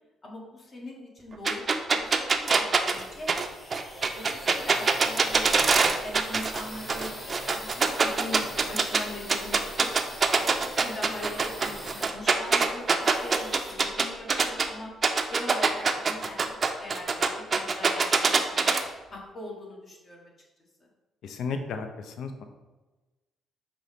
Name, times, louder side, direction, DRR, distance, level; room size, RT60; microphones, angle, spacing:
voice 1, 0.2-3.3 3.9-5.6 6.0-9.9 10.3-14.9 15.3-18.7 19.1-20.3, left 1 dB, 45° left, -2 dB, 1.3 m, -41 dB
sound 1, 1.5-6.6 6.9-9.0 9.3-14.7 15.0-18.8, right 4 dB, 40° right, 0.4 m, -23 dB
sound 2, 2.0-14.7, equal, 25° left, 1.4 m, -43 dB
voice 2, 21.2-22.4, left 4 dB, 70° left, 6 dB, 0.4 m, -34 dB
5.2 x 2.8 x 3.3 m, 1.2 s
supercardioid pair, 65°, 0 cm